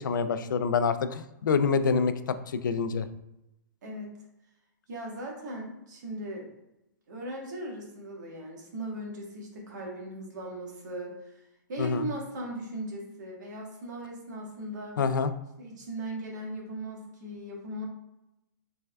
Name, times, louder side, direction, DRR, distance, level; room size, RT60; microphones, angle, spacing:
voice 1, 0.0-3.1 11.8-12.1 15.0-15.3, left 5 dB, 85° left, 11 dB, 0.4 m, -26 dB
voice 2, 3.8-4.1 4.9-6.5 7.1-11.4 11.7-15.0 15.6-17.9, right 1 dB, 65° right, 0 dB, 1.2 m, -38 dB
3.4 x 3.3 x 2.2 m, 0.90 s
hypercardioid pair, 145°, 10 cm